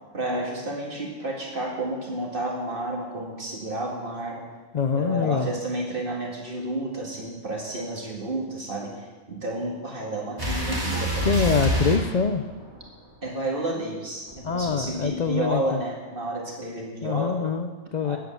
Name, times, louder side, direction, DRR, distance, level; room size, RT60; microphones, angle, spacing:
voice 1, 0.1-4.5 4.9-11.6 13.2-17.4 18.0-18.2, right 1 dB, 40° right, -1 dB, 2.1 m, -31 dB
voice 2, 4.7-5.5 11.2-12.4 14.4-15.8 17.0-18.2, left 6 dB, 65° left, 9 dB, 0.4 m, -24 dB
sound 1, 10.4-12.9 14.3-15.6, right 2 dB, 15° right, 2.4 m, -28 dB
9.4 x 8.4 x 7.5 m, 1.3 s
omnidirectional pair, 1.4 m